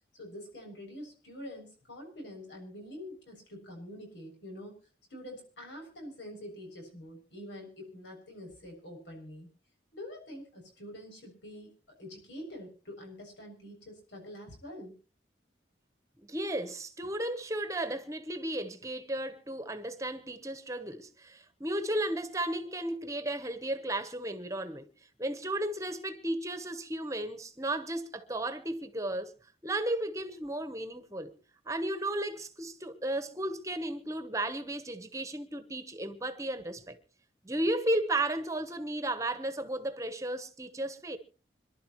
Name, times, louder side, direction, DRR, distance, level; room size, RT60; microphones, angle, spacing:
voice 1, 0.1-4.8 5.1-9.5 9.9-14.9, left 1 dB, 90° left, 7.1 m, -46 dB
voice 2, 16.2-24.9 25.2-29.3 29.6-31.3 31.6-37.0 37.4-41.2, right 1 dB, 15° right, 1.1 m, -34 dB
26.5 x 11.5 x 3.1 m
head